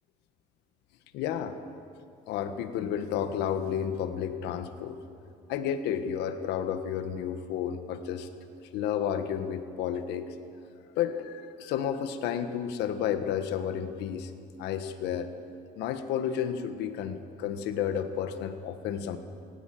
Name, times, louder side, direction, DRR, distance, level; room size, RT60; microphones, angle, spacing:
voice 1, 1.1-1.5 2.3-5.0 5.5-8.3 8.6-10.3 11.0-14.3 14.6-15.3 15.8-19.2, left 9 dB, 85° left, 9 dB, 1.5 m, -31 dB
20.5 x 19.0 x 7.8 m, 2.5 s
cardioid pair, 110°, 17 cm